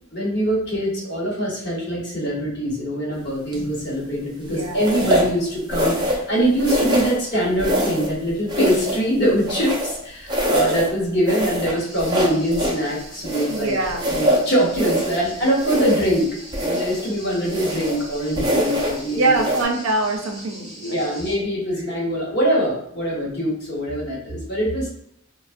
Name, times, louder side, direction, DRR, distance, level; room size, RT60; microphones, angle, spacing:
voice 1, 0.1-13.8 14.1-16.2 16.6-19.4 20.8-24.9, equal, 50° left, -4 dB, 1.0 m, -23 dB
sound 1, 3.5-3.8 4.8-5.4 5.7-6.3 6.6-7.2 7.6-8.2 8.5-10.0 10.3-10.9 11.3-12.8 13.2-15.2 15.6-16.2 16.5-17.1 17.5-18.0 18.4-19.0 19.4-19.6, equal, 20° right, 0.5 m, -23 dB
voice 2, 4.5-5.0 13.5-14.1 19.1-21.0, right 2 dB, 75° right, 2 dB, 0.5 m, -23 dB
sound 2, 11.8-21.4, equal, 20° left, 0.8 m, -42 dB
3.5 x 2.0 x 2.4 m, 0.74 s
head